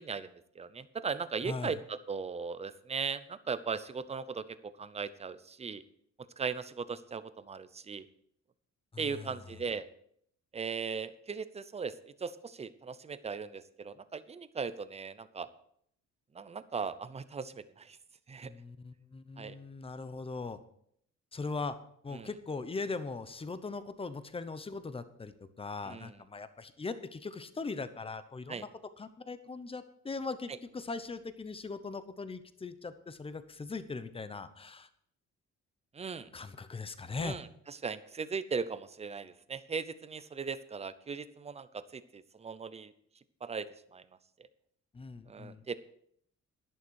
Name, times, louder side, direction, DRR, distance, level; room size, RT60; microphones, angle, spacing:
voice 1, 0.0-4.4 4.8-5.8 6.4-8.1 9.0-9.9 10.5-11.9 12.2-15.5 16.3-18.0 18.3-18.5 19.4-19.6 22.1-22.3 25.8-26.1 28.5-28.6 35.9-36.3 37.2-42.9 43.4-43.7 43.9-44.0 45.3-45.8, right 5 dB, 20° right, 14 dB, 0.6 m, -38 dB
voice 2, 1.4-1.8 8.9-9.4 18.5-20.6 21.3-21.8 22.0-28.7 29.0-34.9 36.3-37.4 44.9-45.8, left 4 dB, 20° left, 12 dB, 0.8 m, -40 dB
11.5 x 11.0 x 4.7 m, 0.67 s
cardioid pair, 150°, 30 cm